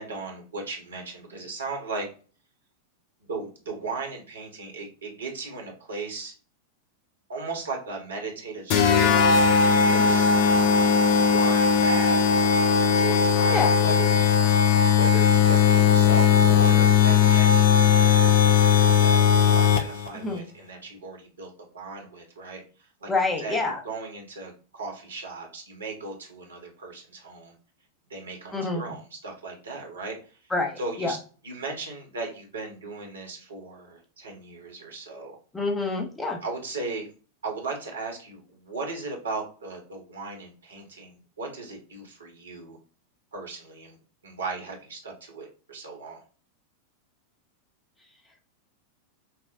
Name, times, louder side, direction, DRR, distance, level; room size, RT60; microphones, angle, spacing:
voice 1, 0.0-2.1 3.3-6.3 7.3-10.3 11.2-12.2 12.8-14.2 14.9-17.5 18.0-23.1 23.4-27.5 28.1-30.4 30.8-31.2 31.4-35.4 36.4-37.1 37.4-42.8 43.3-44.0 44.2-46.2, right 3 dB, 70° right, 1 dB, 1.2 m, -37 dB
sound 1, 8.7-20.1, left 7 dB, 45° left, 0.4 m, -19 dB
voice 2, 23.1-23.8 28.5-28.8 30.5-31.1 35.5-36.4, left 3 dB, 10° left, 2 dB, 0.8 m, -27 dB
5.9 x 2.1 x 2.5 m, 0.37 s
figure-of-eight pair, 90°, 0 cm